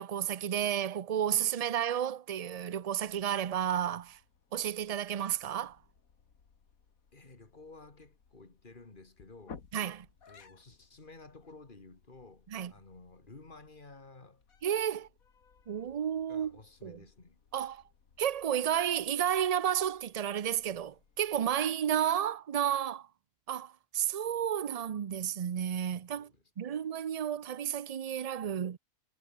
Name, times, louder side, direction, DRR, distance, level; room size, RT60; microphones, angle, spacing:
voice 1, 0.0-4.2 4.5-5.8 9.7-10.1 12.5-12.7 14.6-15.1 15.7-16.5 16.8-17.0 17.5-17.8 18.2-23.1 23.5-26.3 26.6-28.8, right 9 dB, 65° right, 0.3 m, -32 dB
sound 1, 2.4-21.6, left 6 dB, 80° left, 2.3 m, -60 dB
voice 2, 7.1-9.7 10.3-14.4 16.3-17.4 26.1-26.7, left 3 dB, 35° left, 2.7 m, -53 dB
omnidirectional pair, 1.5 m